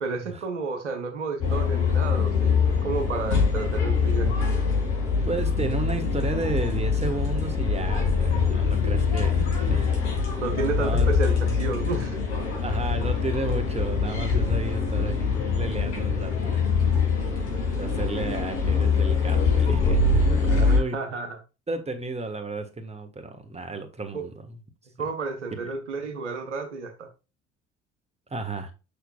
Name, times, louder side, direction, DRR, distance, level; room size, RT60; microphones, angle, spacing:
voice 1, 0.0-4.3 10.4-12.2 20.4-21.4 24.1-24.3 25.0-27.1, right 4 dB, 80° right, 1.0 m, -31 dB
sound 1, 1.4-20.8, left 5 dB, 70° left, 2.5 m, -24 dB
voice 2, 5.2-9.9 10.7-11.1 12.6-16.6 17.8-20.2 20.6-21.0 21.7-24.6 25.6-25.7 28.3-28.7, right 3 dB, 20° right, 1.5 m, -32 dB
6.7 x 6.0 x 2.3 m
figure-of-eight pair, 50°, 35 cm